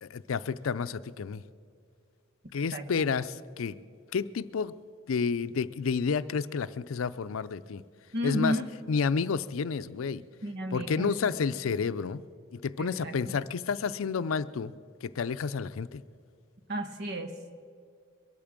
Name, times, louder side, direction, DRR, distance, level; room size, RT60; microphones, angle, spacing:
voice 1, 0.0-1.4 2.5-3.8 4.1-4.7 5.1-7.8 8.2-8.6 8.9-10.2 10.7-12.2 12.5-14.7 15.0-16.0, left 5 dB, 85° left, 14 dB, 0.5 m, -30 dB
voice 2, 2.7-3.0 8.1-8.6 10.4-11.1 12.8-13.4 16.7-17.4, equal, 55° right, 8 dB, 1.2 m, -33 dB
22.5 x 8.7 x 7.4 m, 2.2 s
head